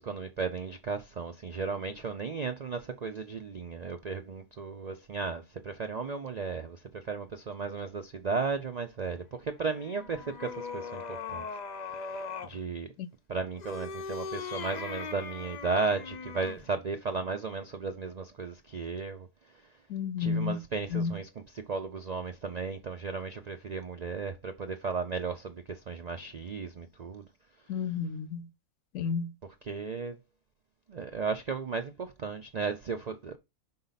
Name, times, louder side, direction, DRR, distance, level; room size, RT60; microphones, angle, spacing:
voice 1, 0.0-11.5 11.8-12.9 13.3-19.3 20.2-21.3 21.5-27.3 29.7-30.2 30.9-33.4, right 4 dB, 60° right, 0.4 m, -35 dB
sound 1, 9.6-12.6 13.5-16.7, left 5 dB, 50° left, 0.5 m, -40 dB
voice 2, 19.9-20.6 20.9-21.2 27.7-28.5 28.9-29.3, left 6 dB, 70° left, 1.0 m, -31 dB
5.4 x 4.7 x 4.0 m
omnidirectional pair, 1.5 m